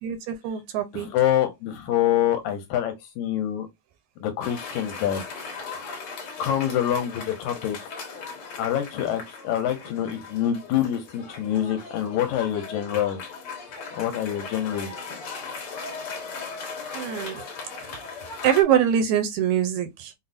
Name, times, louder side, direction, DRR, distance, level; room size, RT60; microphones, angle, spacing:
voice 1, 0.0-1.1 16.9-17.4 18.4-20.1, right 9 dB, 80° right, 1.9 m, -23 dB
voice 2, 0.9-3.7 4.2-5.2 6.4-7.8 8.6-13.2 13.9-14.9, left 11 dB, 85° left, 1.9 m, -26 dB
Cheering / Applause, 4.4-18.6, left 4 dB, 55° left, 1.7 m, -38 dB
5.5 x 2.0 x 2.5 m
omnidirectional pair, 3.4 m